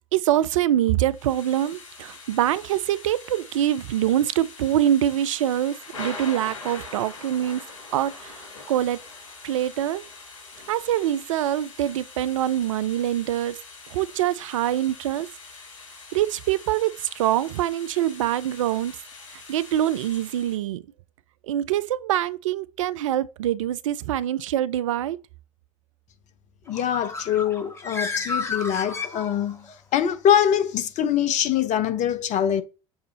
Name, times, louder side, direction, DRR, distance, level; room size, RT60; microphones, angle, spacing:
voice 1, 0.1-7.6 7.9-9.0 9.4-10.0 10.7-13.6 13.9-15.3 16.1-19.0 19.3-20.8 21.5-25.2, right 12 dB, 80° right, 0.4 m, -24 dB
Thunder / Rain, 1.1-20.6, left 3 dB, 80° left, 2.4 m, -43 dB
voice 2, 26.7-32.6, left 9 dB, 45° left, 0.8 m, -23 dB
Bird, 26.7-29.7, left 4 dB, 15° left, 1.3 m, -32 dB
6.7 x 2.4 x 2.8 m
hypercardioid pair, 65°, 16 cm